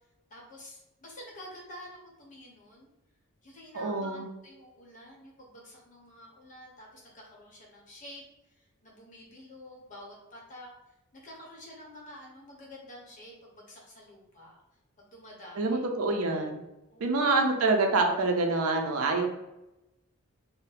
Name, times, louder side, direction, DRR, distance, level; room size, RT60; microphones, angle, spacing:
voice 1, 0.3-2.9 3.4-8.2 8.8-10.7 11.1-14.6 15.0-15.8 16.9-17.3, left 1 dB, 35° left, -3 dB, 0.9 m, -49 dB
voice 2, 3.7-4.2 15.6-16.6 17.0-19.3, right 3 dB, 70° right, 3 dB, 0.5 m, -26 dB
2.6 x 2.1 x 4.0 m, 0.94 s
head